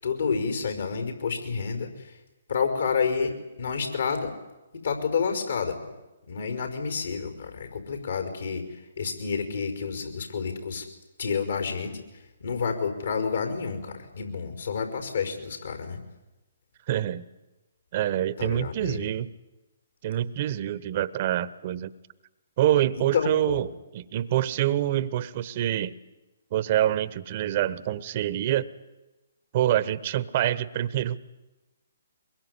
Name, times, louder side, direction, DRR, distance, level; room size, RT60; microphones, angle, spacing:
voice 1, 0.0-2.1 2.5-4.3 4.8-5.9 6.3-8.6 9.0-10.9 11.2-12.0 12.4-16.0 18.4-19.1 23.1-23.6, left 5 dB, 70° left, 6 dB, 5.2 m, -29 dB
voice 2, 16.9-17.3 17.9-19.3 20.0-21.9 22.6-25.9 26.5-28.7 29.5-31.2, right 12 dB, 40° right, 17 dB, 1.2 m, -26 dB
23.0 x 22.0 x 9.7 m, 1.1 s
figure-of-eight pair, 135°, 0 cm